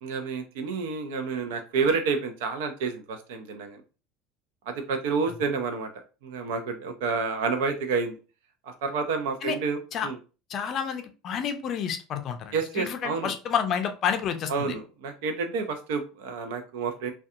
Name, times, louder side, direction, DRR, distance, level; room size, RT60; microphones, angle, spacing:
voice 1, 0.0-3.8 4.7-5.9 6.2-8.1 8.8-10.2 12.5-13.3 14.5-17.1, right 5 dB, 85° right, 7 dB, 0.5 m, -29 dB
voice 2, 10.5-14.7, left 8 dB, 40° left, 7 dB, 0.4 m, -29 dB
2.6 x 2.2 x 2.4 m, 0.33 s
cardioid pair, 145°, 0 cm